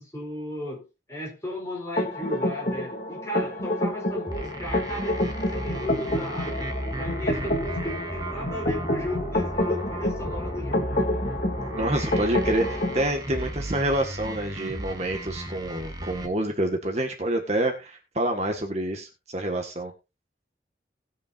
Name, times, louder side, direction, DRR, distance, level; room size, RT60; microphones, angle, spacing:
voice 1, 0.0-11.4, left 1 dB, 15° left, 4.5 m, -35 dB
sound 1, 2.0-13.0, left 1 dB, 45° left, 2.6 m, -28 dB
sound 2, 4.3-16.3, right 1 dB, 20° right, 1.4 m, -34 dB
voice 2, 11.7-19.9, right 1 dB, 35° right, 1.7 m, -27 dB
20.0 x 6.8 x 2.6 m
head